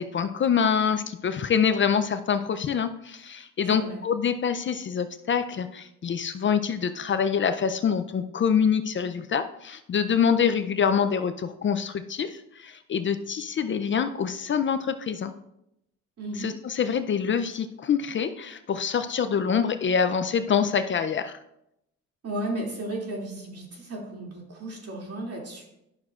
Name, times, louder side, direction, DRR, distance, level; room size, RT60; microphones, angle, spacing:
voice 1, 0.0-15.3 16.4-21.4, left 7 dB, 40° left, 10 dB, 0.5 m, -25 dB
voice 2, 3.6-4.0 16.2-16.5 22.2-25.6, right 1 dB, 50° right, -1 dB, 2.6 m, -34 dB
11.5 x 6.4 x 2.4 m, 0.82 s
cardioid pair, 90°, 30 cm